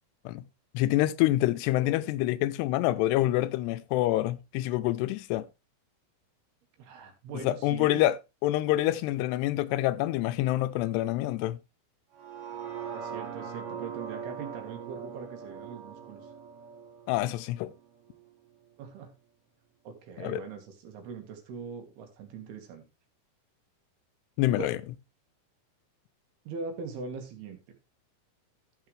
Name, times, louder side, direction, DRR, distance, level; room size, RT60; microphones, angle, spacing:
voice 1, 0.7-5.5 7.4-8.2 8.4-11.6 17.1-17.7 20.2-20.4 24.4-24.8, left 15 dB, 90° left, 2.7 m, -26 dB
voice 2, 6.8-8.1 12.9-16.3 18.8-19.1 19.9-22.8 24.6-24.8 26.5-27.6, right 5 dB, 75° right, 3.7 m, -41 dB
sound 1, 12.1-18.3 18.7-18.8, right 7 dB, 60° right, 3.5 m, -41 dB
14.5 x 6.3 x 3.3 m
omnidirectional pair, 4.7 m